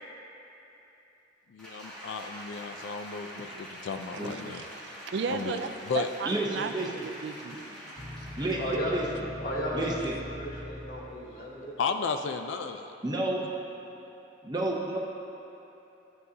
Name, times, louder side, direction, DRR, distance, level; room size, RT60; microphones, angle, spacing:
voice 1, 1.5-4.6 5.3-6.1 11.8-12.8, left 5 dB, 75° left, 6 dB, 0.4 m, -34 dB
Applause, 1.6-8.7 9.1-9.3, equal, 5° left, 1.4 m, -45 dB
voice 2, 4.5-5.7 5.9-7.6, right 5 dB, 60° right, 7 dB, 0.3 m, -34 dB
voice 3, 6.3-7.1 8.4-9.1 9.7-10.2 13.0-13.4 14.4-15.0, right 2 dB, 20° right, -2 dB, 0.7 m, -30 dB
sound 1, 8.0-11.4, left 1 dB, 25° left, 0.7 m, -42 dB
voice 4, 8.5-9.0 9.4-11.8, equal, 50° left, -5 dB, 1.4 m, -35 dB
10.5 x 7.9 x 2.8 m, 3.0 s
head